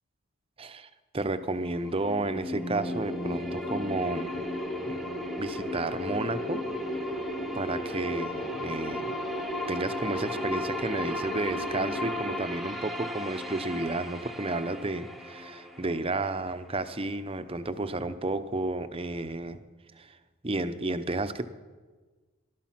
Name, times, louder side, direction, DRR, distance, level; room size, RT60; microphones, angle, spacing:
voice 1, 0.6-4.5 4.8-5.0 5.4-6.6 7.5-9.2 9.7-19.6 20.0-20.2 20.4-21.5, right 2 dB, 25° right, 11 dB, 0.7 m, -32 dB
sound 1, 1.3-17.3, left 2 dB, ahead, 0.9 m, -38 dB
sound 2, 2.7-12.3, equal, 55° left, 5.0 m, -36 dB
19.5 x 12.5 x 6.0 m, 1.3 s
head